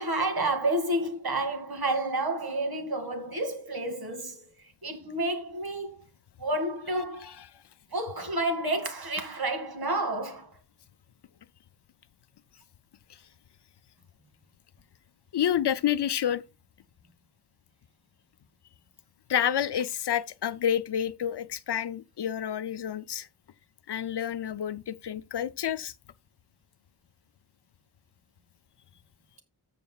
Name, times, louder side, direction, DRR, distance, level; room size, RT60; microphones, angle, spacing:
voice 1, 0.0-6.0 6.4-7.3 7.9-10.6, right 2 dB, 60° right, 2.3 m, -30 dB
voice 2, 15.3-16.4 19.3-23.3 23.9-25.9, left 9 dB, 75° left, 0.6 m, -29 dB
14.0 x 6.9 x 2.3 m
wide cardioid pair, 55°, 42 cm